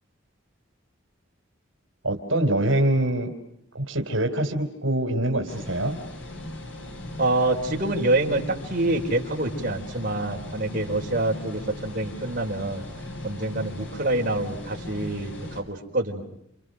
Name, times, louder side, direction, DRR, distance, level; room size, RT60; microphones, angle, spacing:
voice 1, 2.0-3.3 3.7-6.0, right 1 dB, 75° right, 5 dB, 3.2 m, -24 dB
sound 1, 5.5-15.6, left 1 dB, 65° left, 6.8 m, -38 dB
voice 2, 7.2-12.8 13.2-16.2, right 2 dB, 40° right, 0 dB, 4.8 m, -26 dB
30.0 x 29.0 x 6.4 m, 0.74 s
head